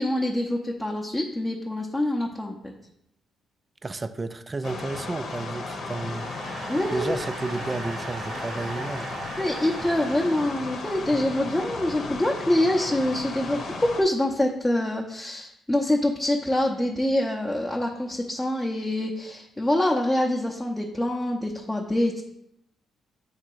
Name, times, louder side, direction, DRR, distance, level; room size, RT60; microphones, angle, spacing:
voice 1, 0.0-2.7 6.7-7.1 9.4-22.2, left 1 dB, 10° left, -2 dB, 0.7 m, -25 dB
voice 2, 3.8-6.3 6.9-9.1, right 3 dB, 25° right, 11 dB, 0.4 m, -32 dB
sound 1, 4.6-14.0, left 3 dB, 65° left, 0.9 m, -35 dB
sound 2, 5.2-11.4, right 4 dB, 60° right, 0.6 m, -41 dB
7.5 x 2.9 x 4.6 m, 0.79 s
cardioid pair, 90°, 0 cm